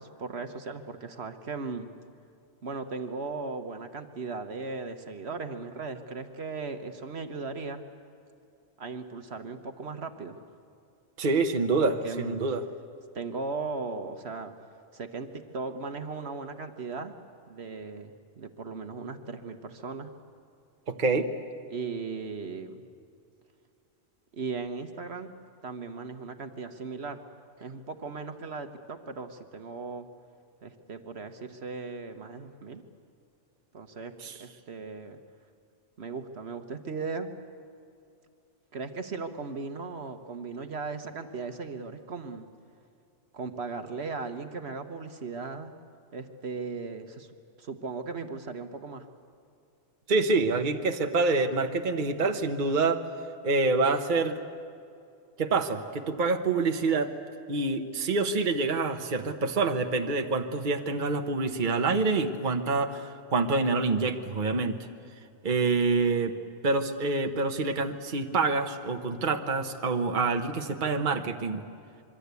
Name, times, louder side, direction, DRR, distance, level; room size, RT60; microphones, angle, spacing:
voice 1, 0.0-1.9 2.6-7.8 8.8-10.4 11.8-12.4 13.1-14.5 14.9-17.1 17.5-20.1 21.7-22.8 24.3-25.3 25.6-27.2 27.6-30.1 30.6-32.8 33.7-34.1 34.4-35.2 36.0-37.3 38.7-42.5 43.3-45.7 46.1-47.3 47.6-49.1, right 4 dB, 65° right, 7 dB, 1.4 m, -37 dB
voice 2, 11.2-12.6 20.9-21.3 34.2-34.3 50.1-53.1 53.4-54.4 55.4-57.1 57.5-64.9 65.4-66.4 66.6-71.6, right 3 dB, 45° right, 5 dB, 1.2 m, -26 dB
25.5 x 23.0 x 8.3 m, 2.4 s
omnidirectional pair, 1.2 m